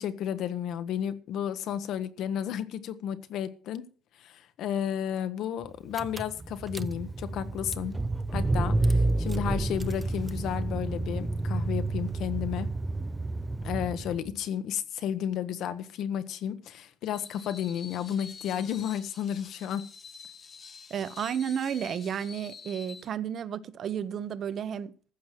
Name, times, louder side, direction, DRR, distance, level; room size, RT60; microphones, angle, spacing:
voice 1, 0.0-3.8 4.2-7.9 8.3-12.7 13.6-19.8, left 9 dB, 65° left, 1.1 m, -32 dB
Car / Engine, 5.6-5.7 5.9-14.3, right 2 dB, 15° right, 0.6 m, -30 dB
Screech, 17.0-23.1, left 5 dB, 30° left, 1.0 m, -47 dB
voice 2, 20.9-25.1, right 8 dB, 45° right, 0.8 m, -32 dB
15.0 x 6.0 x 7.5 m
cardioid pair, 145°, 0 cm